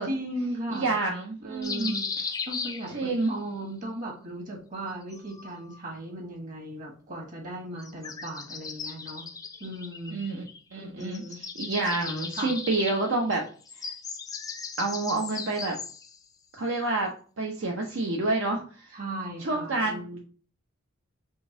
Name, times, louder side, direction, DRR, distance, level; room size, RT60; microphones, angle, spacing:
voice 1, 0.0-0.9 1.4-2.1 2.5-9.2 9.6-10.2 10.7-11.4 12.3-12.5 18.9-20.2, right 1 dB, 45° right, 0 dB, 1.7 m, -37 dB
voice 2, 0.7-1.9 2.9-3.3 10.1-10.4 10.7-11.2 11.6-13.4 13.8-13.9 14.8-15.7 16.5-17.1 17.4-19.0 19.4-20.2, right 2 dB, 70° right, 0 dB, 0.7 m, -28 dB
sound 1, 1.6-3.4 4.8-5.8 7.8-10.7 11.0-16.2, left 5 dB, 20° left, 0.4 m, -37 dB
3.7 x 3.5 x 3.8 m, 0.41 s
head